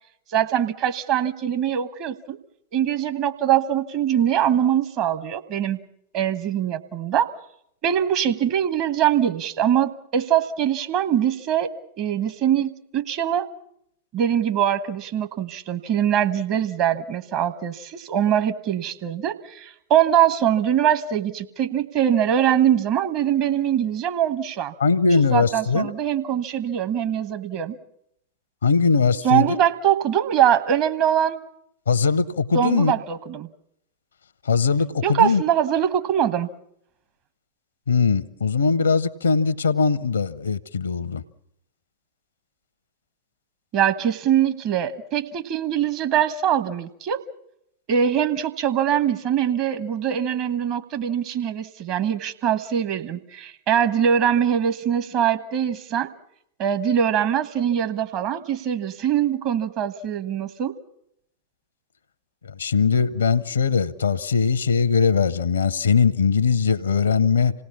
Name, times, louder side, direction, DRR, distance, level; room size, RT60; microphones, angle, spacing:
voice 1, 0.3-2.4 2.7-5.8 6.1-7.3 7.8-11.7 12.0-13.5 14.1-24.7 25.3-27.8 29.2-31.4 32.5-33.5 35.0-36.5 43.7-47.2 47.9-56.1 56.6-60.8, right 9 dB, 40° right, 1.1 m, -22 dB
voice 2, 24.8-25.9 28.6-29.6 31.9-32.9 34.4-35.4 37.9-41.2 62.4-67.5, left 5 dB, 70° left, 0.8 m, -20 dB
26.5 x 17.5 x 7.1 m
figure-of-eight pair, 90°, 0 cm